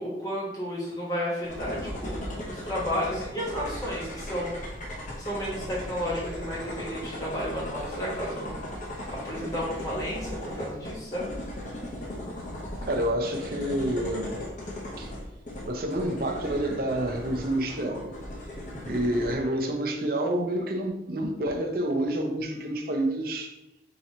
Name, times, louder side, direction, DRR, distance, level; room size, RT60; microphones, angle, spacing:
voice 1, 0.0-2.2 2.5-4.5 5.2-8.6 9.1-11.3, equal, 20° left, -6 dB, 1.3 m, -32 dB
sound 1, 1.4-19.3, left 1 dB, 45° left, 0.9 m, -37 dB
voice 2, 12.8-14.4 15.0-15.1 15.6-18.1 18.8-23.5, right 1 dB, 50° right, 3 dB, 0.6 m, -28 dB
3.8 x 3.0 x 4.1 m, 0.91 s
head